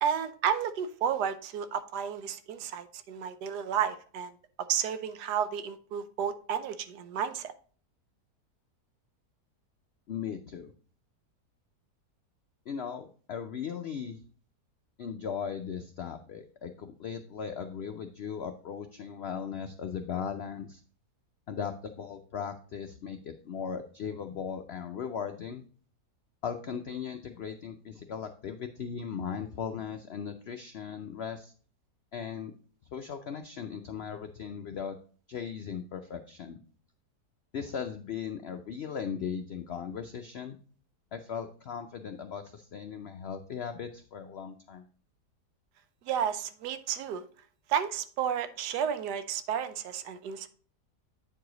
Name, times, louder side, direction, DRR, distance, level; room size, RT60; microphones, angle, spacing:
voice 1, 0.0-4.3 4.7-7.5 46.1-47.2 47.7-50.5, right 8 dB, 90° right, 1.3 m, -32 dB
voice 2, 10.1-10.7 12.7-14.2 15.0-20.8 21.5-25.6 26.4-31.5 32.1-32.5 32.9-35.0 35.3-36.6 37.5-40.6 41.1-44.8, left 7 dB, 85° left, 0.5 m, -38 dB
8.8 x 4.8 x 3.8 m
omnidirectional pair, 1.7 m